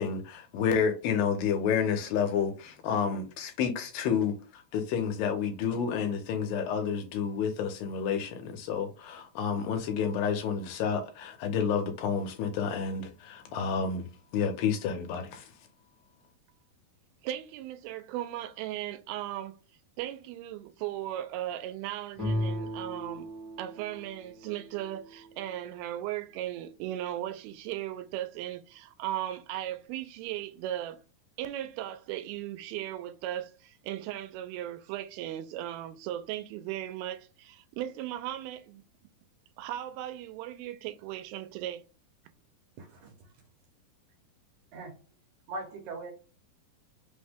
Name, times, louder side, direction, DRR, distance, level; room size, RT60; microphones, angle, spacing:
voice 1, 0.0-14.1 14.3-15.5, left 7 dB, 75° left, 2.5 m, -30 dB
voice 2, 17.2-19.6 20.0-23.3 23.6-31.0 31.4-38.8 39.6-41.8, right 12 dB, 90° right, 2.5 m, -37 dB
sound 1, 22.1-25.8, left 1 dB, ahead, 0.5 m, -37 dB
voice 3, 42.8-43.3 44.7-44.9 45.5-46.1, right 2 dB, 70° right, 2.0 m, -40 dB
5.7 x 2.1 x 3.5 m
omnidirectional pair, 4.3 m